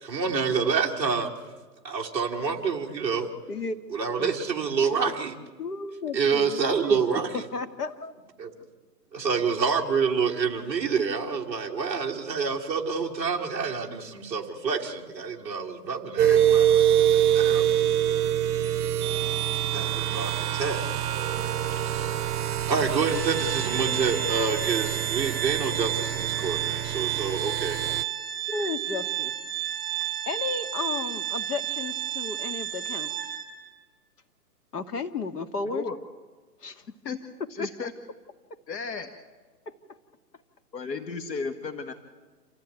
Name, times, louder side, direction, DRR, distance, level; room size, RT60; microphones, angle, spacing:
voice 1, 0.0-1.3 1.8-3.3 3.9-5.4 6.1-7.4 8.4-8.5 9.1-17.8 18.1-18.5 19.7-20.8 21.7-22.3 22.7-27.8, right 5 dB, 5° right, -6 dB, 1.4 m, -28 dB
voice 2, 5.6-6.6 6.9-7.0 7.5-8.1 27.8-28.1 28.5-29.3 30.3-33.1 34.7-35.8 36.6-36.8 37.6-37.7 39.7-40.0, left 4 dB, 65° left, 8 dB, 2.0 m, -33 dB
sound 1, 16.2-28.0, right 10 dB, 65° right, 0.7 m, -25 dB
Organ, 23.1-33.7, right 10 dB, 35° right, 2.3 m, -31 dB
voice 3, 35.7-36.0 37.0-37.2 37.5-37.9 38.7-39.1 40.7-41.9, left 4 dB, 85° left, 7 dB, 2.0 m, -33 dB
27.5 x 15.0 x 9.3 m, 1.3 s
hypercardioid pair, 175°, 49 cm